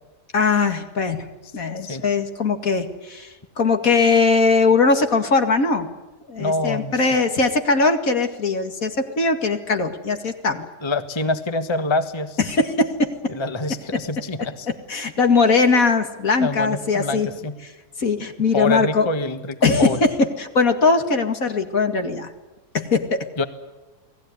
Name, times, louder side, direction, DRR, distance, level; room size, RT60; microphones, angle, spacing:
voice 1, 0.3-1.3 1.5-3.3 3.6-5.9 6.3-10.7 12.4-13.1 14.9-17.3 18.0-19.1 19.6-20.1 20.4-22.3 22.7-23.3, left 4 dB, 60° left, 6 dB, 2.6 m, -20 dB
voice 2, 6.4-6.9 10.8-12.4 13.3-14.7 16.4-17.6 18.5-20.0 23.4-23.5, left 2 dB, 20° left, 9 dB, 1.4 m, -25 dB
29.5 x 19.5 x 9.7 m, 1.1 s
omnidirectional pair, 1.7 m